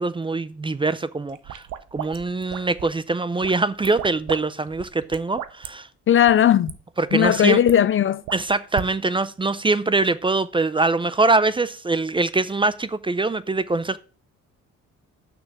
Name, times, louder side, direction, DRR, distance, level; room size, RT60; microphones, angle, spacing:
voice 1, 0.0-1.7 1.9-5.9 7.0-7.6 8.3-14.0, right 3 dB, 15° right, 0.5 m, -23 dB
sound 1, 1.3-3.0 3.4-4.4 4.7-5.7 6.2-6.4 6.7-6.8 7.1-7.7 8.3-8.9, right 11 dB, 75° right, 0.8 m, -35 dB
voice 2, 6.1-6.7 7.1-8.2, left 10 dB, 45° left, 0.4 m, -17 dB
6.2 x 6.2 x 6.3 m
cardioid pair, 90°, 30 cm